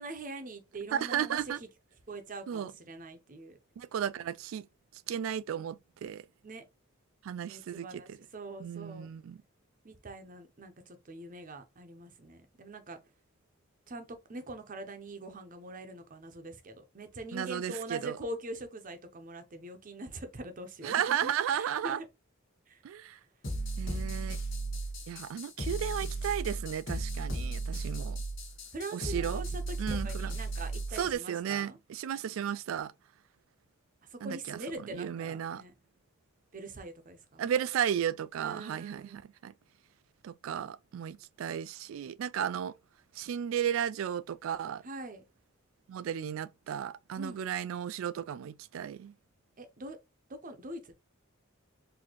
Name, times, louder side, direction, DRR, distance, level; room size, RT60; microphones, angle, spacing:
voice 1, 0.0-1.7 2.1-3.6 6.4-6.6 7.4-9.1 9.8-13.0 13.9-22.1 22.7-22.8 28.7-31.8 34.0-35.7 36.5-37.5 38.4-39.2 44.8-45.2 47.2-47.5 49.6-50.0 50.3-50.9, right 2 dB, 40° right, 0.7 m, -43 dB
voice 2, 0.9-1.6 2.5-2.7 3.8-4.7 4.9-6.2 7.2-8.2 8.6-9.4 17.3-18.2 20.8-22.0 22.8-23.2 23.8-24.4 25.1-28.2 28.9-29.4 29.8-30.3 30.9-32.9 34.2-34.6 34.9-35.6 37.4-39.5 40.2-42.7 43.1-44.8 45.9-49.1, right 9 dB, 75° right, 0.3 m, -34 dB
sound 1, 23.4-31.1, right 2 dB, 65° left, 1.4 m, -35 dB
4.1 x 2.7 x 3.0 m
head